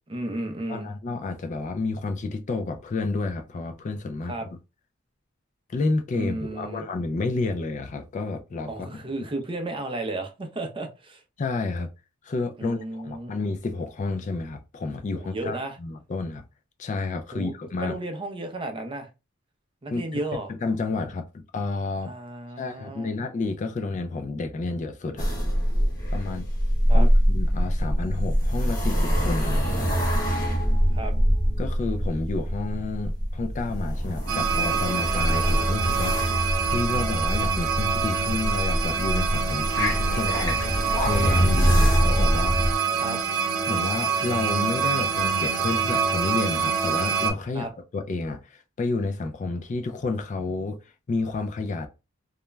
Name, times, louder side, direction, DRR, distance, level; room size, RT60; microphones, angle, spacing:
voice 1, 0.1-0.9 4.3-4.5 6.2-6.9 8.7-11.2 12.6-13.4 15.1-15.8 17.3-19.1 19.8-20.5 22.0-23.1 26.9-27.1 30.9-31.1 43.0-43.2 47.5-47.7, right 2 dB, 25° right, 0.5 m, -33 dB
voice 2, 0.7-4.6 5.7-9.0 11.4-11.9 12.2-16.4 16.8-18.0 19.9-20.0 20.5-22.1 22.6-25.4 26.1-26.5 26.9-29.9 31.6-42.6 43.7-47.7 47.9-50.8 51.1-51.9, left 3 dB, 35° left, 0.3 m, -30 dB
sound 1, 25.2-42.7, equal, 20° left, 1.1 m, -24 dB
sound 2, 34.3-47.3, right 6 dB, 70° right, 0.8 m, -26 dB
2.3 x 2.1 x 3.1 m
head